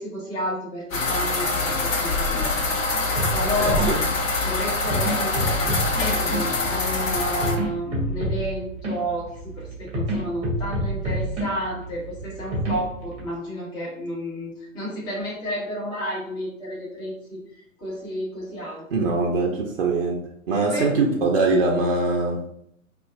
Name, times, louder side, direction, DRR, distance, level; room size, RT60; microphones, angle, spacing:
voice 1, 0.0-4.0 4.4-17.4 17.8-18.8 20.7-20.9, equal, 10° left, -6 dB, 0.7 m, -31 dB
sound 1, 0.9-7.6, left 3 dB, 65° left, 0.8 m, -24 dB
sound 2, 3.2-13.3, right 1 dB, 15° right, 1.0 m, -29 dB
voice 2, 3.6-4.0 18.9-20.2 20.5-22.4, right 3 dB, 45° right, 0 dB, 0.5 m, -22 dB
3.9 x 2.4 x 2.4 m, 0.73 s
figure-of-eight pair, 120°, 42 cm